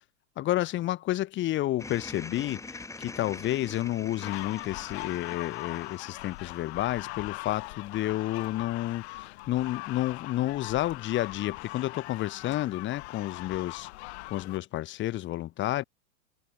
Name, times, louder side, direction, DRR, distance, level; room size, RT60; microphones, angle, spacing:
voice 1, 0.4-13.9 14.3-15.8, left 15 dB, 30° left, 1.8 m, -30 dB
sound 1, 1.8-7.2, left 3 dB, 5° left, 2.9 m, -44 dB
sound 2, 4.2-14.6, left 23 dB, 50° left, 4.3 m, -40 dB
hypercardioid pair, 125°, 41 cm